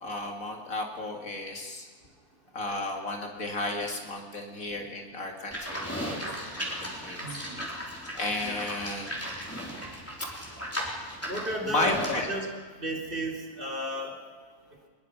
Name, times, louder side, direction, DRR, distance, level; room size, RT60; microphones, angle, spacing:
voice 1, 0.0-1.9 2.5-7.2 8.1-9.3 11.7-12.3, left 2 dB, 60° left, 2 dB, 2.8 m, -33 dB
Livestock farm animals working animals, 5.5-12.2, equal, 10° left, 4.3 m, -36 dB
voice 2, 7.2-7.6 8.4-8.6 11.3-12.5 12.8-14.2, right 1 dB, 35° right, 1 dB, 3.2 m, -33 dB
22.0 x 21.5 x 6.0 m, 1.5 s
omnidirectional pair, 1.6 m